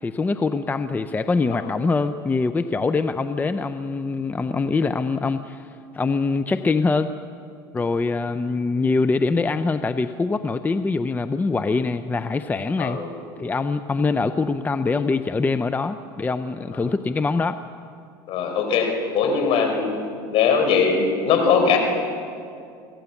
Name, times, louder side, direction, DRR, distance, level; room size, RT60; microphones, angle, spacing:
voice 1, 0.0-7.1 7.7-13.0 13.4-17.6, left 3 dB, 15° left, 10 dB, 0.6 m, -24 dB
voice 2, 12.8-13.1 18.3-19.9 20.3-21.8, left 6 dB, 55° left, 4 dB, 4.7 m, -20 dB
24.5 x 17.0 x 7.2 m, 2.4 s
supercardioid pair, 110°, 11 cm